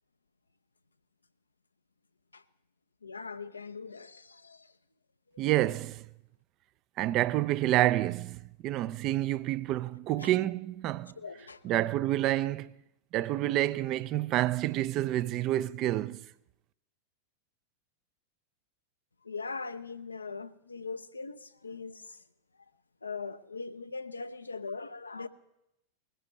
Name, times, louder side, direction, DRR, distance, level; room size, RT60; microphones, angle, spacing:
voice 1, 3.0-4.7 10.1-10.3 11.2-11.7 19.2-22.2 23.0-25.3, left 4 dB, 80° left, 0.6 m, -41 dB
voice 2, 5.4-6.1 7.0-11.1 11.6-12.7 13.1-16.2, right 14 dB, 40° right, 0.4 m, -28 dB
20.5 x 14.5 x 3.1 m
figure-of-eight pair, 90°, 0 cm